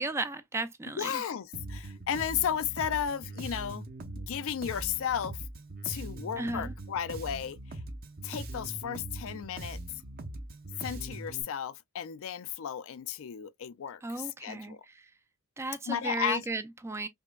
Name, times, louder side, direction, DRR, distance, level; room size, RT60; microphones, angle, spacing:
voice 1, 0.0-1.2 6.4-6.7 14.0-15.1 15.6-17.1, right 2 dB, 10° right, 0.3 m, -35 dB
voice 2, 1.0-3.8 4.2-5.4 5.8-7.6 8.2-9.8 10.8-14.8 15.9-16.4, left 8 dB, 65° left, 0.4 m, -34 dB
Bass guitar, 1.5-11.4, right 2 dB, 45° right, 0.7 m, -41 dB
5.2 x 2.1 x 2.2 m
head